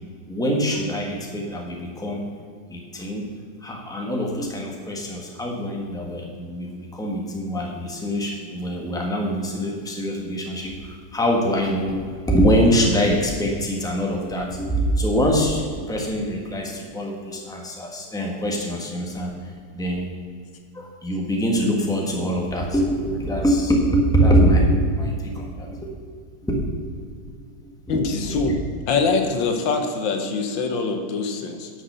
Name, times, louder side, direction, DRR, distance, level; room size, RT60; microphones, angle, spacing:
voice 1, 0.3-2.3 2.7-3.3 3.6-20.0 20.7-25.9 26.4-27.3 27.9-28.5, equal, ahead, 0 dB, 1.2 m, -24 dB
voice 2, 27.9-28.5 28.9-31.7, left 4 dB, 90° left, 5 dB, 1.8 m, -24 dB
10.0 x 5.8 x 6.8 m, 2.1 s
omnidirectional pair, 2.0 m